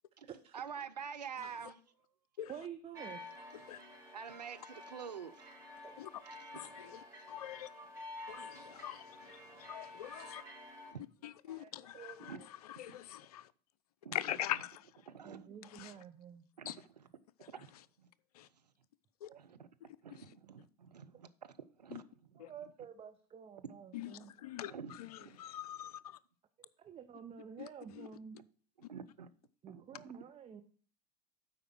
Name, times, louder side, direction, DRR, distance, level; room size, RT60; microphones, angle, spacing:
voice 1, 0.5-1.8 4.1-5.5 6.5-6.7 7.8-8.0 10.9-11.0 12.3-12.4 12.9-13.0 14.0-14.2 15.1-15.6 16.6-17.1 17.5-18.1 19.4-19.7 20.0-21.5 21.8-22.0 22.3-22.5 24.6-25.4 28.9-29.3 29.7-30.0, right 7 dB, 85° right, 0.6 m, -47 dB
voice 2, 2.5-3.2 6.2-6.4 6.8-7.2 11.5-12.5 15.2-16.5 19.3-19.6 22.4-24.3 26.8-28.4 29.6-30.6, right 8 dB, 30° right, 0.7 m, -50 dB
sound 1, 2.9-10.9, left 1 dB, 15° right, 4.4 m, -51 dB
voice 3, 6.5-7.0 7.3-7.7 8.3-10.4 11.2-12.4 12.7-13.5 14.1-14.9 15.6-15.9 16.7-16.8 18.3-18.5 19.2-19.3 20.2-20.3 21.9-22.0 22.4-22.5 23.9-26.2 27.6-28.1, left 12 dB, 70° left, 0.5 m, -43 dB
8.0 x 5.0 x 6.1 m
figure-of-eight pair, 75°, 20 cm